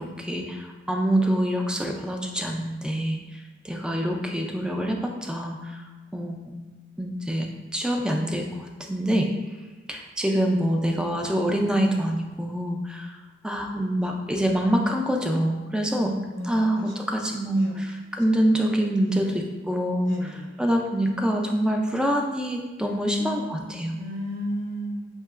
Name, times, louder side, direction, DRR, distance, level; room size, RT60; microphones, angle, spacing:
voice 1, 0.0-3.2 3.6-5.8 6.1-6.6 7.0-9.3 9.9-13.1 13.4-16.1 16.4-24.0, equal, 5° right, 2 dB, 0.3 m, -25 dB
voice 2, 16.3-16.9 17.6-17.8 19.1-19.2 20.0-20.6 22.9-25.1, equal, 65° right, -1 dB, 0.8 m, -34 dB
5.3 x 2.8 x 2.4 m, 1.2 s
head